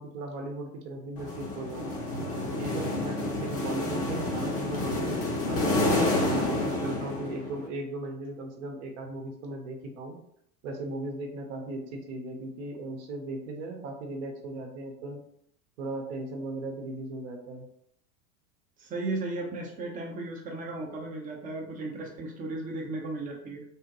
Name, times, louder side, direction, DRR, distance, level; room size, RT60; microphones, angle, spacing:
voice 1, 0.0-1.9 2.4-5.8 6.2-10.2 10.6-15.2 15.8-17.7, right 2 dB, 55° right, 2 dB, 0.8 m, -37 dB
sound 1, 1.2-7.7, left 2 dB, 35° left, 0.8 m, -29 dB
voice 2, 18.8-23.6, right 2 dB, 20° right, -1 dB, 0.6 m, -35 dB
3.4 x 2.1 x 2.8 m, 0.72 s
hypercardioid pair, 85°, 43 cm